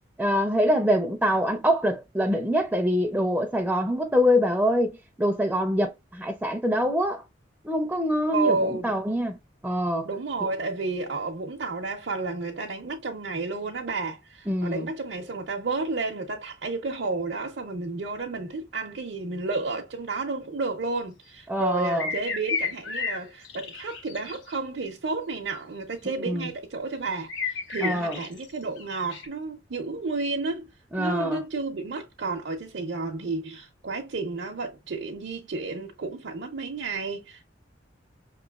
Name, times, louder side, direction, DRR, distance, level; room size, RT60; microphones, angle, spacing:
voice 1, 0.2-7.2 7.6-9.4 9.6-10.1 14.5-14.9 21.5-22.1 26.2-26.5 27.8-28.2 30.9-31.4, equal, 5° right, 0.4 m, -24 dB
voice 2, 8.3-8.9 10.0-30.7 31.0-37.4, right 3 dB, 65° right, 0.6 m, -31 dB
sound 1, 21.9-24.6 27.3-28.5 28.8-29.3, left 5 dB, 80° left, 1.2 m, -32 dB
5.5 x 3.0 x 2.3 m
head